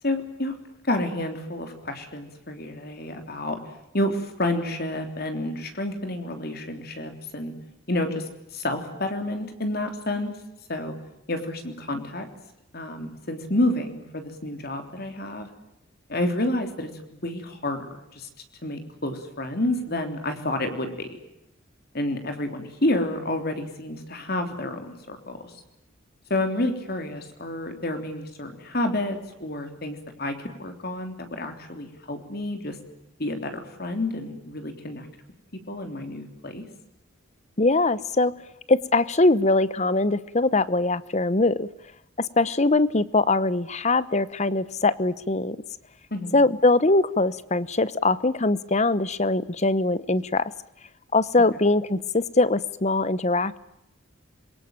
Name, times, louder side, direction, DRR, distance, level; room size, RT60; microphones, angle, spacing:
voice 1, 0.0-0.5 0.8-3.6 3.9-7.5 7.9-8.2 8.5-10.3 10.7-10.9 11.3-12.3 12.7-15.5 16.1-17.9 18.1-18.3 18.6-21.2 21.9-25.5 26.3-32.8 33.2-35.1 35.7-36.6 46.1-46.4, left 1 dB, 50° left, 6 dB, 3.3 m, -29 dB
voice 2, 37.6-38.3 38.7-41.7 42.2-45.6 46.3-50.5 51.1-53.6, left 2 dB, 35° left, 17 dB, 0.9 m, -22 dB
26.5 x 23.0 x 9.0 m, 0.86 s
head